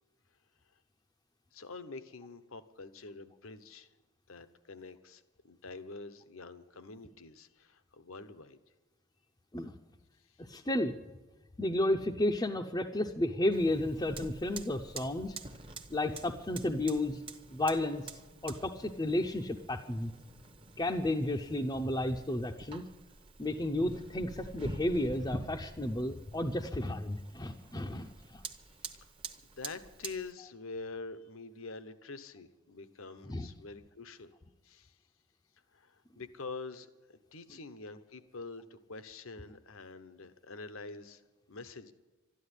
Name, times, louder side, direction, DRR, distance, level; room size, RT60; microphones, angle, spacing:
voice 1, 1.5-3.9 4.3-8.6 10.3-10.4 28.7-29.1 29.6-34.3 34.6-35.0 35.7-41.2 41.5-41.9, left 3 dB, 75° left, 11 dB, 1.0 m, -46 dB
voice 2, 10.4-10.9 11.6-15.4 15.9-17.2 17.5-18.0 18.4-20.1 20.8-22.8 23.4-28.4 33.3-33.5, left 1 dB, 20° left, 0 dB, 0.6 m, -32 dB
Fire, 13.5-30.3, right 3 dB, 25° right, 0.9 m, -48 dB
13.0 x 11.0 x 9.9 m, 1.2 s
head